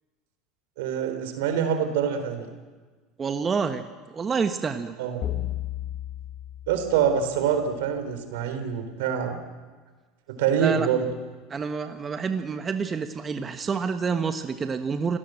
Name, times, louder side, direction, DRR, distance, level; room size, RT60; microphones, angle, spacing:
voice 1, 0.8-2.5 5.0-5.2 6.7-9.4 10.3-11.0, right 8 dB, 80° right, 7 dB, 3.8 m, -25 dB
voice 2, 3.2-3.8 4.1-4.9 10.5-10.9 11.5-15.2, right 5 dB, 30° right, 8 dB, 1.4 m, -28 dB
sound 1, 5.2-7.7, left 13 dB, 45° left, 1.3 m, -34 dB
28.0 x 18.0 x 7.8 m, 1.4 s
hypercardioid pair, 95°, 0 cm